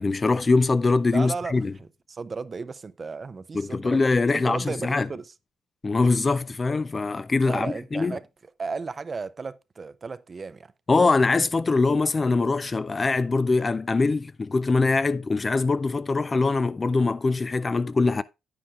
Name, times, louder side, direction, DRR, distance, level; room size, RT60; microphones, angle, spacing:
voice 1, 0.0-1.7 3.5-5.1 5.8-8.2 10.9-18.2, left 3 dB, 30° left, 0.3 m, -23 dB
voice 2, 1.1-4.0 4.3-5.3 7.4-8.3 8.6-10.7, right 4 dB, 35° right, 0.5 m, -34 dB
9.8 x 8.8 x 2.4 m
cardioid pair, 90°, 0 cm